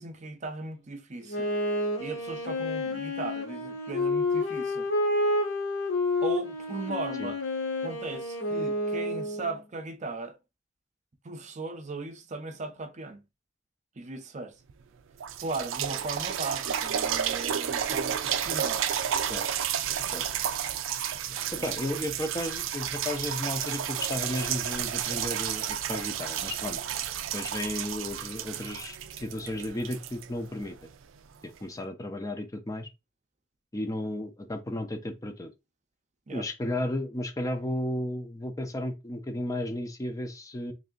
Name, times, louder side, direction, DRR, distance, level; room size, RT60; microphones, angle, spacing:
voice 1, 0.0-1.5 2.0-4.9 6.2-7.4 7.8-10.4 11.2-13.2 14.0-14.6 15.4-18.8 21.5-22.0 36.3-36.5, right 3 dB, 40° right, 0.6 m, -37 dB
Wind instrument woodwind instrument, 1.3-9.6, left 1 dB, 70° left, 1.2 m, -29 dB
sound 1, 14.7-14.8 15.2-30.9 31.6-31.7, right 9 dB, 90° right, 0.4 m, -31 dB
voice 2, 21.3-26.8 27.3-30.8 31.6-32.9 33.7-35.5 36.3-40.7, left 1 dB, 20° left, 0.5 m, -34 dB
3.3 x 2.6 x 3.8 m
head